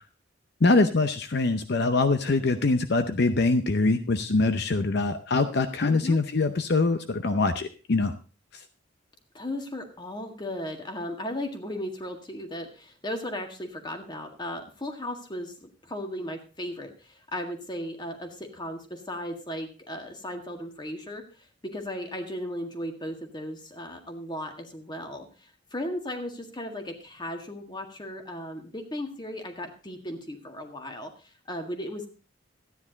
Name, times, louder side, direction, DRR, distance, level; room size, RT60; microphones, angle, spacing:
voice 1, 0.6-8.1 8.5-8.6, left 3 dB, 60° left, 9 dB, 0.7 m, -24 dB
voice 2, 5.9-6.2 9.3-32.1, left 1 dB, 25° left, 5 dB, 1.8 m, -36 dB
13.5 x 9.9 x 3.9 m, 0.34 s
head